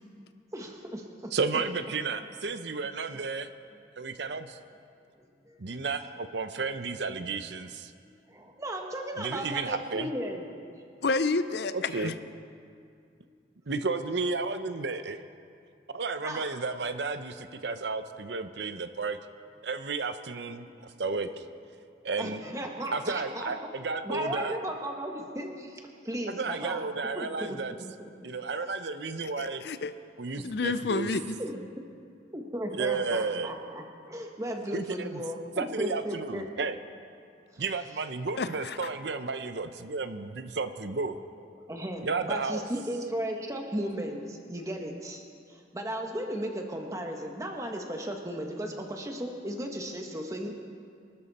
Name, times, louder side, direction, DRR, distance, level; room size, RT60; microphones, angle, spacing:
voice 1, 0.5-1.3 5.2-5.6 8.3-10.5 13.3-13.4 16.2-16.5 20.8-20.9 22.2-23.7 24.0-26.8 27.1-28.1 30.4-30.5 31.4-31.6 32.3-36.5 37.5-37.7 41.7-50.5, equal, 15° right, 2 dB, 1.4 m, -36 dB
voice 2, 1.3-3.5 4.0-4.6 5.6-7.9 9.2-10.1 11.7-12.1 13.7-15.2 15.9-19.2 19.6-21.4 22.0-22.4 22.9-24.5 26.3-27.7 28.2-29.6 30.2-31.1 32.7-33.5 34.7-35.2 35.6-36.8 37.6-41.2 42.0-42.7, right 4 dB, 65° right, 10 dB, 0.7 m, -32 dB
voice 3, 11.0-12.2 29.2-29.9 30.4-31.3 38.4-38.8, left 3 dB, 60° left, 12 dB, 0.6 m, -30 dB
24.5 x 12.5 x 4.2 m, 2.4 s
head